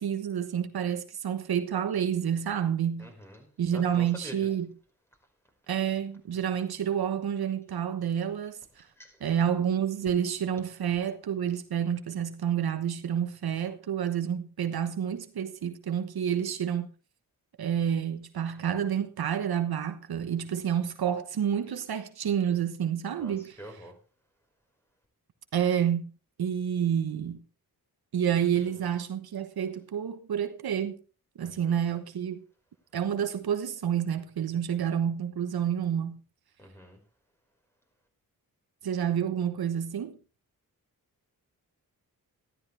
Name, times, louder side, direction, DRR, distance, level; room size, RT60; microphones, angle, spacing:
voice 1, 0.0-3.1 3.6-4.7 5.7-8.9 9.2-16.9 17.6-23.8 25.5-26.1 26.4-27.4 28.1-31.0 31.4-32.4 32.9-36.2 38.8-40.2, right 9 dB, 85° right, 1.2 m, -29 dB
voice 2, 3.0-4.5 9.0-9.1 23.2-23.9 31.4-31.7 36.6-37.0, equal, 5° left, 5.2 m, -46 dB
13.5 x 13.0 x 3.4 m
cardioid pair, 65°, 36 cm